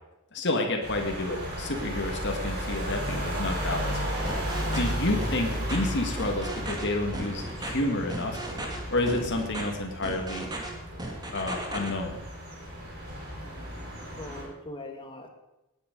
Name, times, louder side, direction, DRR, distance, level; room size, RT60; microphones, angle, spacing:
voice 1, 0.3-4.0 4.7-8.4 8.9-10.5 11.3-12.2, left 2 dB, 55° left, 2 dB, 1.9 m, -30 dB
sound 1, 0.8-14.4, equal, 45° right, 5.1 m, -34 dB
sound 2, 4.3-4.9 5.2-5.8 6.2-6.8 7.1-7.7 8.1-8.8 9.1-9.6 10.0-10.7 11.0-11.9, right 1 dB, 20° right, 2.4 m, -36 dB
voice 2, 13.3-13.9 14.2-15.3, left 1 dB, 25° left, 4 dB, 1.7 m, -42 dB
18.5 x 9.4 x 5.4 m, 0.97 s
head